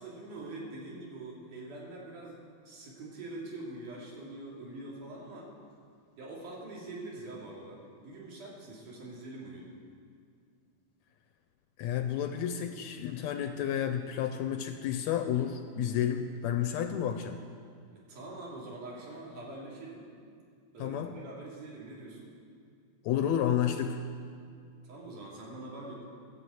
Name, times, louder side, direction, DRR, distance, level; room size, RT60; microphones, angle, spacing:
voice 1, 0.0-5.5 6.2-9.7 18.1-20.1 20.7-22.3 24.8-26.0, right 2 dB, 85° right, -4 dB, 3.9 m, -44 dB
voice 2, 11.8-17.4 20.8-21.2 23.1-24.0, left 9 dB, 80° left, 7 dB, 1.7 m, -31 dB
12.5 x 8.1 x 7.8 m, 2.3 s
omnidirectional pair, 3.5 m